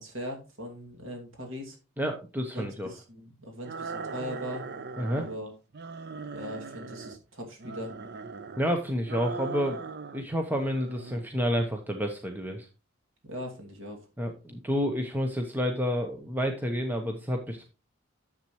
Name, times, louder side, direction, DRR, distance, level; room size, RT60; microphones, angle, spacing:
voice 1, 0.0-1.8 2.5-4.6 5.1-5.5 6.3-7.9 13.2-14.0, equal, 80° right, 2 dB, 2.5 m, -39 dB
voice 2, 2.0-2.9 5.0-5.3 8.6-9.8 10.1-12.7 14.2-17.6, equal, 10° right, 3 dB, 0.9 m, -29 dB
sound 1, 3.6-5.4 5.7-7.2 7.6-8.7 9.1-10.2 10.5-11.3, right 4 dB, 55° right, 0.6 m, -39 dB
10.5 x 7.5 x 3.1 m, 0.31 s
head